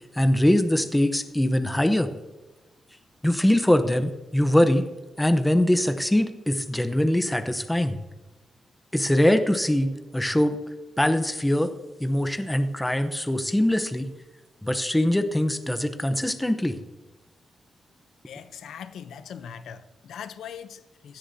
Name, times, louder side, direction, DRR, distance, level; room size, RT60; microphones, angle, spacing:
voice 1, 0.1-2.1 3.2-4.8 5.2-8.0 8.9-10.6 11.0-11.7 12.0-14.1 14.6-16.8, left 1 dB, 5° left, 9 dB, 0.8 m, -22 dB
voice 2, 18.2-21.2, left 8 dB, 85° left, 12 dB, 0.7 m, -41 dB
17.0 x 12.5 x 2.7 m, 1.1 s
wide cardioid pair, 165°, 0 cm